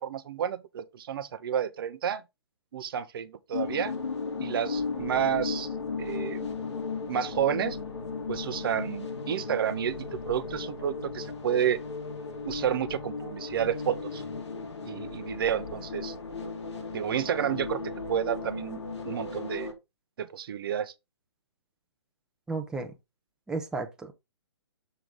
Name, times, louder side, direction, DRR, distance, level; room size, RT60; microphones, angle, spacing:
voice 1, 0.0-2.2 2.7-3.9 4.4-5.7 6.0-6.5 7.1-7.8 8.3-11.8 12.4-14.2 14.8-16.1 16.9-17.8 18.1-19.7 20.2-20.9, right 9 dB, 55° right, 0.7 m, -30 dB
sound 1, 3.5-19.7, left 4 dB, 80° left, 2.2 m, -36 dB
voice 2, 22.5-22.9 23.5-24.1, right 3 dB, 5° right, 0.8 m, -33 dB
6.8 x 3.6 x 4.7 m
figure-of-eight pair, 135°, 15 cm